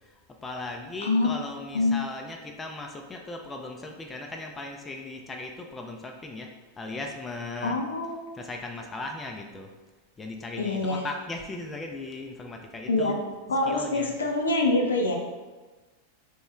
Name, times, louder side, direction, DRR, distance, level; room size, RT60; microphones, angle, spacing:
voice 1, 0.0-6.5 6.8-7.8 8.3-9.7 10.2-13.2 13.6-14.1, left 2 dB, 15° left, 2 dB, 0.4 m, -37 dB
voice 2, 1.0-1.3 1.7-2.0 7.6-8.2 10.6-11.1 12.9-13.2 13.5-15.2, left 2 dB, 70° left, 2 dB, 0.6 m, -25 dB
3.0 x 3.0 x 3.5 m, 1.2 s
figure-of-eight pair, 90°, 0 cm